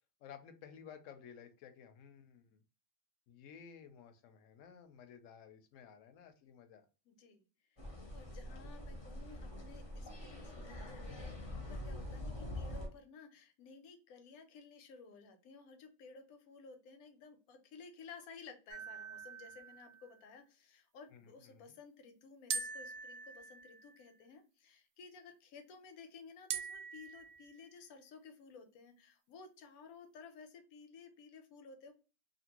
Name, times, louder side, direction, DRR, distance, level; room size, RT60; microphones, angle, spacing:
voice 1, 0.2-2.6 3.3-6.9 8.5-8.6 21.1-21.7, left 7 dB, 70° left, 8 dB, 0.9 m, -55 dB
voice 2, 7.1-31.9, left 5 dB, 90° left, 6 dB, 1.1 m, -56 dB
sound 1, 7.8-12.9, left 1 dB, 25° left, 0.6 m, -45 dB
sound 2, 18.7-20.2 22.5-24.2 26.5-27.6, right 6 dB, 65° right, 0.9 m, -43 dB
2.7 x 2.6 x 2.8 m, 0.34 s
omnidirectional pair, 1.5 m